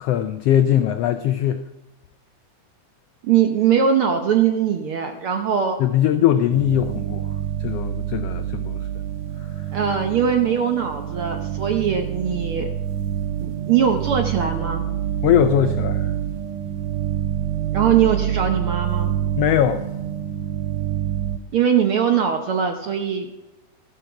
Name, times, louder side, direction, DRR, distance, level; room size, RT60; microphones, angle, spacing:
voice 1, 0.0-1.6 5.8-7.3 7.6-8.9 9.6-9.7 15.2-16.1 19.4-19.9, left 10 dB, 90° left, 9 dB, 1.3 m, -20 dB
voice 2, 3.2-5.8 9.7-12.7 13.4-14.8 17.7-19.2 21.5-23.4, right 8 dB, 65° right, 5 dB, 1.4 m, -21 dB
sound 1, 6.5-21.4, right 10 dB, 85° right, 2.2 m, -27 dB
13.5 x 12.0 x 4.7 m, 1.0 s
omnidirectional pair, 3.4 m